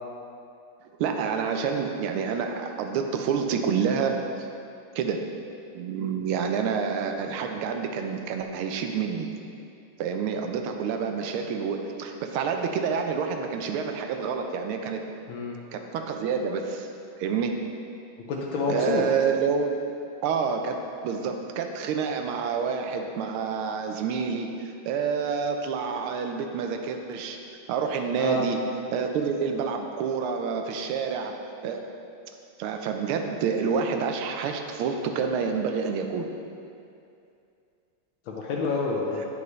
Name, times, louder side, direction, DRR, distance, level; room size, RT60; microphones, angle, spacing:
voice 1, 1.0-4.2 4.9-5.2 5.7-9.3 10.0-15.0 15.7-16.9 17.2-17.5 18.7-19.7 20.2-20.8 21.0-27.4 27.7-28.6 28.9-31.3 31.6-31.8 32.6-36.3, right 6 dB, 85° right, 4 dB, 1.5 m, -28 dB
voice 2, 18.3-19.0 28.2-28.5 38.3-39.2, left 4 dB, 75° left, -2 dB, 1.4 m, -28 dB
9.4 x 5.3 x 3.1 m, 2.5 s
omnidirectional pair, 2.3 m